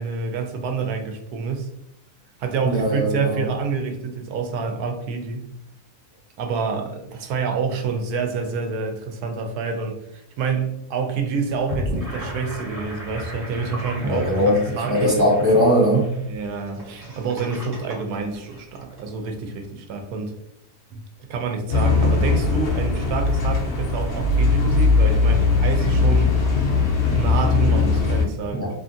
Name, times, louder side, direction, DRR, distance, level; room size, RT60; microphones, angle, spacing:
voice 1, 0.0-1.7 2.4-5.5 6.4-15.1 16.3-20.3 20.9-21.0 21.3-26.4 27.0-28.7, right 5 dB, 80° right, 4 dB, 1.1 m, -27 dB
voice 2, 2.6-3.5 14.0-14.6 14.8-16.1 28.5-28.8, equal, 20° right, -6 dB, 0.8 m, -19 dB
Gurgling / Sink (filling or washing), 11.5-19.0, left 1 dB, 40° right, 1.1 m, -34 dB
sound 1, 21.7-28.2, left 4 dB, 65° left, 0.6 m, -19 dB
2.7 x 2.5 x 2.5 m, 0.81 s
omnidirectional pair, 1.7 m